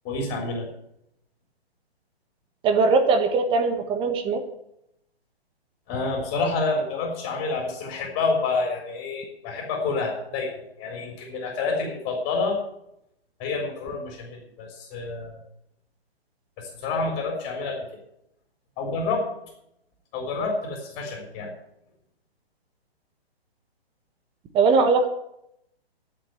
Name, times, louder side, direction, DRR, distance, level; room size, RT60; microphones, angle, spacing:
voice 1, 0.0-0.7 5.9-12.6 13.4-15.4 16.6-17.9 18.8-19.2 20.1-21.5, left 3 dB, 25° left, 0 dB, 3.5 m, -28 dB
voice 2, 2.6-4.4 24.5-25.1, right 4 dB, 15° right, 7 dB, 1.3 m, -20 dB
11.0 x 7.6 x 9.0 m, 0.80 s
hypercardioid pair, 140°, 32 cm